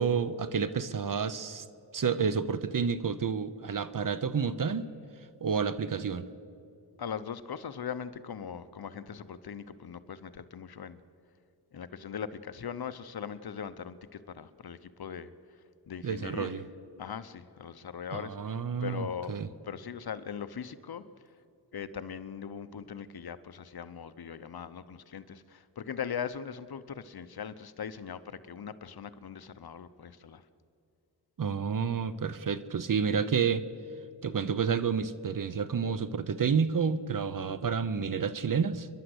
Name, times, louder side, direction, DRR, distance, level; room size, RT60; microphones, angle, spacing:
voice 1, 0.0-1.6 1.9-4.9 5.4-6.3 16.0-16.6 18.1-19.5 31.4-33.6 34.2-38.9, right 6 dB, 50° right, 14 dB, 0.9 m, -30 dB
voice 2, 7.0-11.0 11.7-15.3 15.9-16.6 17.0-19.4 19.7-21.0 21.7-30.4, left 7 dB, 60° left, 13 dB, 0.9 m, -40 dB
29.0 x 11.5 x 8.0 m, 2.5 s
wide cardioid pair, 90°, 42 cm